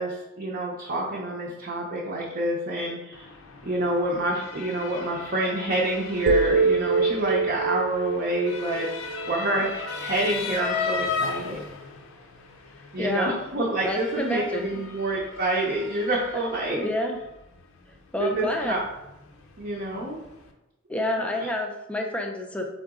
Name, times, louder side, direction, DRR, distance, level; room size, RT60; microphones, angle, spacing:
voice 1, 0.0-3.3 3.6-11.6 12.9-16.8 18.1-18.8 19.6-20.2 21.2-21.5, right 1 dB, 45° right, -3 dB, 0.7 m, -28 dB
Motor vehicle (road) / Siren, 3.1-20.5, left 5 dB, 70° left, 0.6 m, -37 dB
sound 1, 6.3-10.3, right 4 dB, 90° right, 0.4 m, -26 dB
voice 2, 13.0-13.4 13.8-14.7 16.6-17.2 18.1-18.8 20.9-22.7, left 1 dB, 5° left, 2 dB, 0.5 m, -28 dB
3.9 x 3.7 x 3.6 m, 0.93 s
head